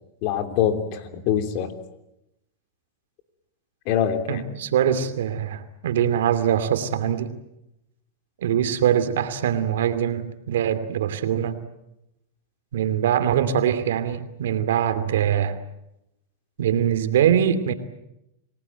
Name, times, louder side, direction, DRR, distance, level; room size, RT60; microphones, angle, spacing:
voice 1, 0.2-1.7 3.8-4.5, left 9 dB, 50° left, 8 dB, 3.1 m, -24 dB
voice 2, 4.3-7.3 8.4-11.6 12.7-15.6 16.6-17.7, right 9 dB, 80° right, 11 dB, 2.6 m, -23 dB
28.0 x 19.0 x 9.2 m, 0.87 s
hypercardioid pair, 125°, 0 cm